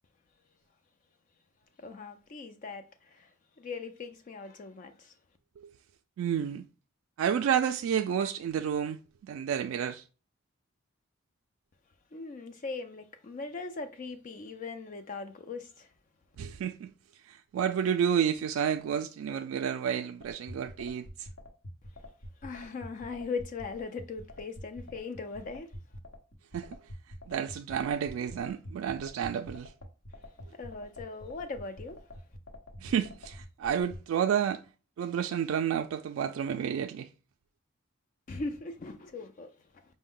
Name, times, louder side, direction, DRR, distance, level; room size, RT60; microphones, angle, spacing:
voice 1, 1.8-5.1 12.1-15.9 22.4-25.7 30.6-32.0 38.3-39.8, left 4 dB, 40° left, 0.4 m, -40 dB
voice 2, 6.2-6.7 7.2-10.0 16.4-16.9 17.3-21.3 26.5-26.8 27.3-29.7 32.8-34.6 35.0-37.1, right 8 dB, 85° right, 0.3 m, -30 dB
sound 1, 20.2-34.0, left 1 dB, 70° left, 0.9 m, -45 dB
5.0 x 2.1 x 3.6 m
head